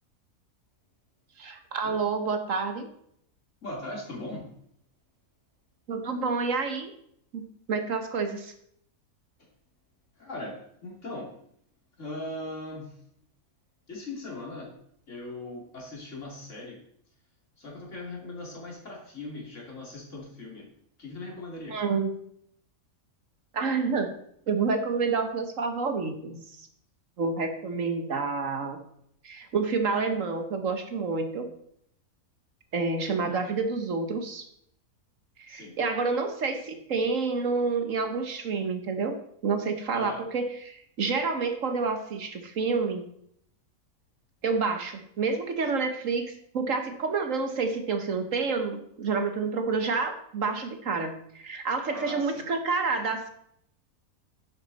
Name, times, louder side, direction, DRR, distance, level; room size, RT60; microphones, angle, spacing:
voice 1, 1.4-2.9 5.9-6.9 7.3-7.4 7.7-8.5 21.7-22.1 23.5-24.1 24.5-26.7 27.2-28.8 29.2-31.5 32.7-34.4 35.4-39.2 39.4-43.0 44.4-46.2 46.5-53.3, right 4 dB, 60° right, 6 dB, 1.4 m, -28 dB
voice 2, 3.6-4.4 10.2-10.6 10.8-11.3 12.0-12.9 13.9-14.7 15.1-16.8 17.6-20.7 21.0-21.8 33.2-33.4 35.5-35.7 39.9-40.2 51.9-52.5, left 2 dB, 50° left, -2 dB, 3.3 m, -39 dB
10.0 x 8.7 x 4.1 m, 0.70 s
omnidirectional pair, 1.6 m